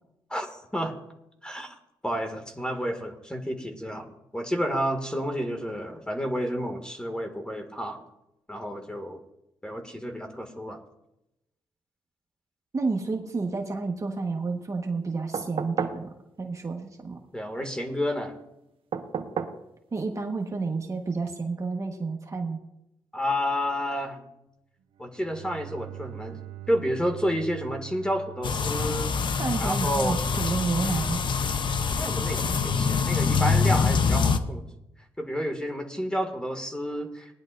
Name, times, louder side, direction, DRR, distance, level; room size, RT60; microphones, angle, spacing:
voice 1, 0.3-0.9 1.4-1.7 2.0-8.0 8.5-9.2 9.6-10.8 17.3-18.4 23.1-24.3 25.0-26.4 26.7-29.1 29.6-30.2 32.0-34.7 35.2-37.3, equal, 10° left, 4 dB, 2.1 m, -30 dB
voice 2, 12.7-17.2 19.9-22.6 29.4-31.2, right 4 dB, 35° right, 2 dB, 1.4 m, -30 dB
sound 1, 15.3-16.1 18.9-19.6 21.2-21.3, right 6 dB, 65° right, 1.0 m, -31 dB
Bowed string instrument, 24.9-29.9, right 15 dB, 90° right, 1.1 m, -43 dB
sound 2, 28.4-34.4, left 5 dB, 55° left, 0.8 m, -25 dB
20.0 x 10.5 x 2.6 m, 0.88 s
cardioid pair, 80°, 10 cm